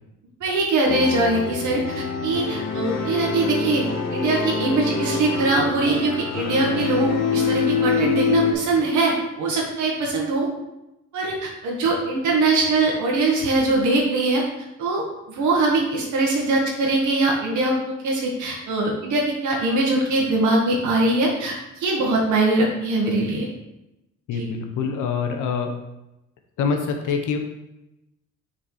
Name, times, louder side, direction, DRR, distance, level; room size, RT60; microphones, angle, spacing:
voice 1, 0.4-3.8 4.1-10.5 11.1-14.4 14.8-23.5 24.3-24.5, right 2 dB, 75° right, -2 dB, 1.5 m, -22 dB
sound 1, 0.9-8.5, left 5 dB, 60° left, 1.1 m, -25 dB
voice 2, 24.3-25.7 26.6-27.4, left 5 dB, 85° left, 4 dB, 1.0 m, -25 dB
6.0 x 4.2 x 4.9 m, 0.92 s
cardioid pair, 90°, 30 cm